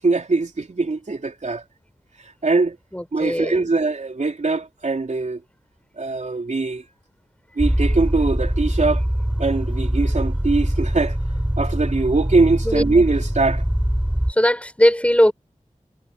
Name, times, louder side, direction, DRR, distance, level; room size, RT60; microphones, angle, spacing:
voice 1, 0.0-1.6 2.2-2.8 3.1-5.4 6.0-6.8 7.6-9.0 9.4-11.2 11.6-13.6, right 3 dB, 65° right, 4.0 m, -21 dB
voice 2, 2.9-3.7 12.6-12.8 14.3-15.3, equal, 10° left, 7.0 m, -19 dB
sound 1, 7.6-14.3, equal, 10° right, 6.7 m, -23 dB
wide cardioid pair, 50°, 13 cm